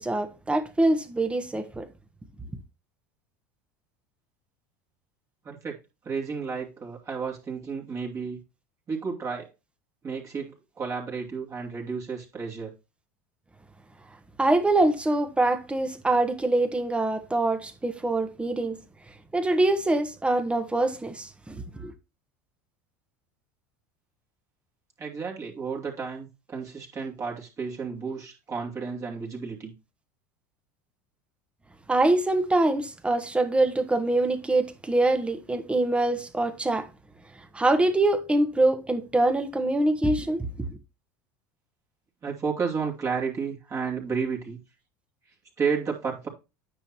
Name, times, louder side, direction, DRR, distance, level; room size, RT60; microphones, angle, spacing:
voice 1, 0.0-1.9 14.4-18.8 19.3-21.9 31.9-36.9 37.5-40.8, right 2 dB, 10° right, 1.3 m, -24 dB
voice 2, 5.4-5.8 6.0-8.4 8.9-9.5 10.0-12.7 25.0-29.7 42.2-44.6 45.6-46.3, right 5 dB, 35° right, 2.7 m, -32 dB
9.5 x 5.7 x 2.9 m
hypercardioid pair, 90°, 9 cm